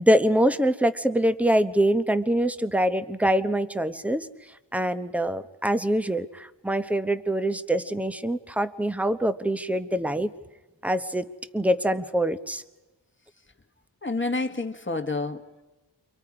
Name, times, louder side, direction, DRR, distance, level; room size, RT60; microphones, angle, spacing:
voice 1, 0.0-4.3 4.7-10.3 10.8-12.6, right 1 dB, 5° right, 11 dB, 0.9 m, -24 dB
voice 2, 14.0-15.6, left 3 dB, 25° left, 6 dB, 1.5 m, -29 dB
29.0 x 25.0 x 4.9 m, 1.1 s
wide cardioid pair, 45°, 44 cm